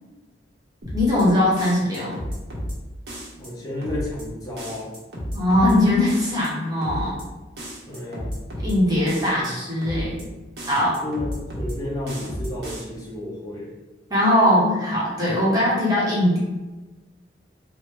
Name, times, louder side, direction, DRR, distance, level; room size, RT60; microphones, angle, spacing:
sound 1, 0.8-1.2 1.6-2.7 3.1-3.5 3.8-4.2 4.6-5.7 6.1-6.5 6.8-7.2 7.6-8.7 9.1-9.5 9.8-10.2 10.6-11.7 12.1-12.8, equal, 70° right, 0.8 m, -32 dB
voice 1, 0.9-2.1 5.3-7.2 8.6-10.2 10.6-11.0 14.1-16.4, left 1 dB, 20° right, -7 dB, 0.8 m, -20 dB
voice 2, 3.3-4.9 7.9-8.4 9.4-9.6 11.0-13.7, left 1 dB, 20° left, -5 dB, 0.8 m, -32 dB
3.2 x 2.1 x 3.2 m, 1.2 s
head